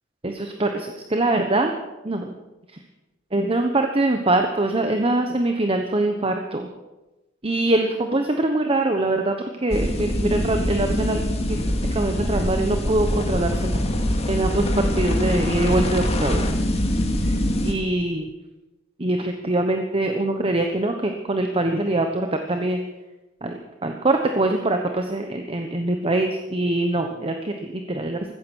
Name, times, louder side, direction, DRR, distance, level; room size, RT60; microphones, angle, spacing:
voice 1, 0.2-1.7 2.0-2.4 3.3-6.7 7.4-11.2 11.5-11.6 11.9-13.8 14.3-16.5 17.2-17.3 17.6-18.3 19.0-22.8 23.4-28.3, right 2 dB, 30° right, 5 dB, 1.1 m, -23 dB
sound 1, 9.7-17.7, left 1 dB, 30° left, 2.2 m, -23 dB
15.5 x 14.5 x 6.3 m, 1.0 s
head